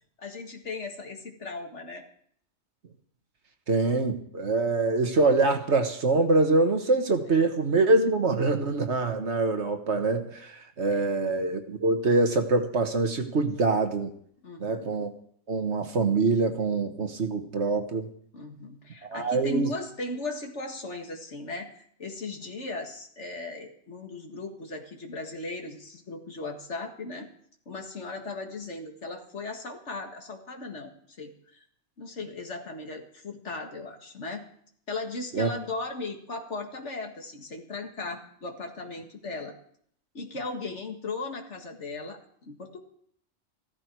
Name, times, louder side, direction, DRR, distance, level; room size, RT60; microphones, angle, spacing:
voice 1, 0.2-2.0 10.9-11.2 14.4-14.9 18.3-27.3 27.7-30.9 31.2-31.6 32.0-34.5 34.9-39.6 40.1-42.8, left 3 dB, 70° left, 3 dB, 2.2 m, -37 dB
voice 2, 3.7-14.1 14.6-15.1 15.5-18.1 19.1-19.7 35.3-35.5, right 3 dB, 65° right, 5 dB, 1.7 m, -24 dB
15.0 x 14.0 x 4.6 m, 0.63 s
omnidirectional pair, 1.3 m